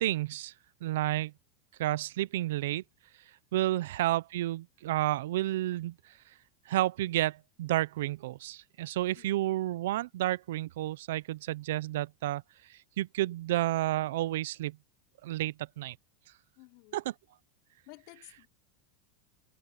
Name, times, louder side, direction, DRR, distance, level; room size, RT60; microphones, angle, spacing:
voice 1, 0.0-0.5 0.8-1.3 1.8-2.8 3.5-5.9 6.7-12.4 12.7-14.8 15.2-16.0 16.9-17.0, right 15 dB, 75° right, 0.5 m, -31 dB
voice 2, 9.1-9.7 16.6-17.1 17.9-18.5, left 26 dB, 55° left, 3.8 m, -55 dB
supercardioid pair, 150°, 0 cm